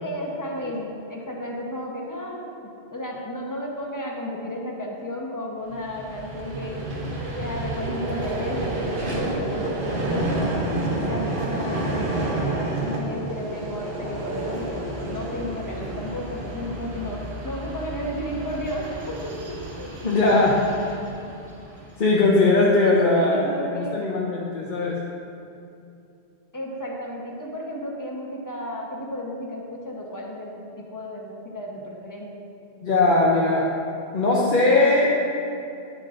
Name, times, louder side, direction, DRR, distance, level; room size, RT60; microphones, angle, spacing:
voice 1, 0.0-2.5 2.9-6.8 7.4-10.5 11.0-20.0 22.1-22.4 22.8-24.0 26.5-32.3, equal, 20° left, -2 dB, 1.0 m, -33 dB
Vehicle, 5.7-22.0, right 2 dB, 50° right, 1.2 m, -30 dB
voice 2, 20.0-21.0 22.0-23.4 23.7-25.0 32.8-33.7 34.1-35.1, left 2 dB, 50° left, -5 dB, 0.9 m, -19 dB
10.5 x 7.5 x 2.6 m, 2.7 s
omnidirectional pair, 1.1 m